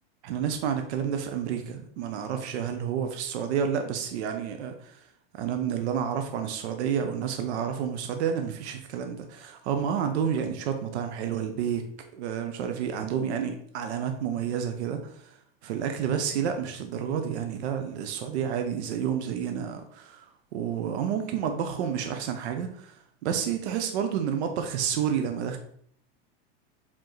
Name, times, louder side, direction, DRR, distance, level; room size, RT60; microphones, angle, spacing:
voice 1, 0.2-5.0 5.3-11.8 12.1-15.4 15.6-25.6, right 8 dB, 70° right, 6 dB, 0.7 m, -30 dB
4.9 x 3.6 x 3.0 m, 0.66 s
supercardioid pair, 160°, 34 cm